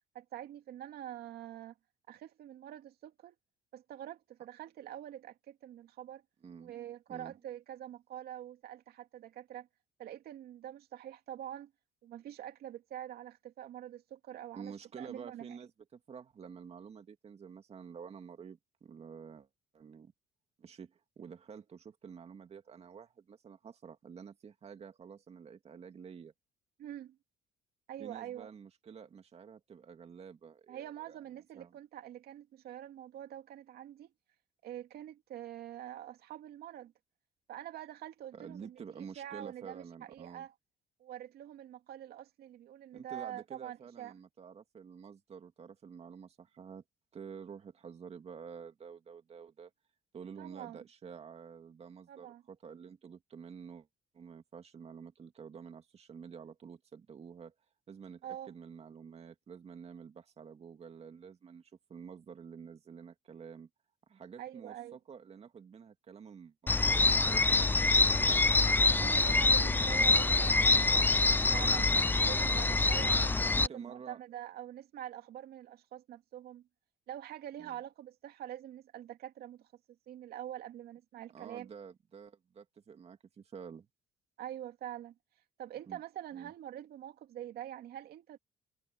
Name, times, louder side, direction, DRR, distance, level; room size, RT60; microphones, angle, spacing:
voice 1, 0.1-1.7 2.1-3.3 3.7-6.2 6.6-9.7 10.0-11.7 12.0-15.6 26.8-27.2 27.9-28.5 30.7-34.1 34.6-36.9 37.5-40.5 41.0-44.1 50.4-50.8 52.1-52.4 58.2-58.5 64.4-65.0 69.0-71.9 72.2-76.6 77.1-79.7 80.1-81.7 84.4-85.1 85.6-88.4, right 11 dB, 70° right, 2.4 m, -45 dB
voice 2, 14.5-19.5 19.7-20.1 20.6-26.3 28.0-31.2 31.5-31.8 38.3-40.5 42.9-46.8 47.1-49.7 50.1-53.9 54.1-57.5 57.9-63.7 64.1-68.5 73.5-74.2 77.6-77.8 81.3-83.9 85.9-86.0 86.3-86.5, right 6 dB, 40° right, 2.3 m, -49 dB
sound 1, 66.7-73.7, left 3 dB, 10° left, 0.5 m, -26 dB
cardioid pair, 110°, 17 cm